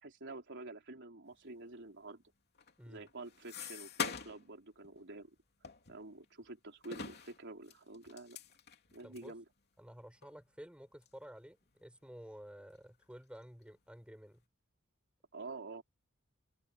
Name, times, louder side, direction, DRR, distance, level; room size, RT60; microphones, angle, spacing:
voice 1, 0.0-2.2 2.9-5.4 5.9-8.4 8.9-9.4 15.3-15.8, right 2 dB, 55° right, 4.1 m, -48 dB
sound 1, 2.6-4.5 4.8-5.0 5.6-6.5 6.8-9.3 9.9-10.0 10.2-10.3 11.0-11.2 11.7-12.4 12.7-13.4, left 6 dB, 50° left, 3.0 m, -44 dB
voice 2, 9.0-9.3 9.8-14.4, equal, 5° right, 7.4 m, -52 dB
open air
head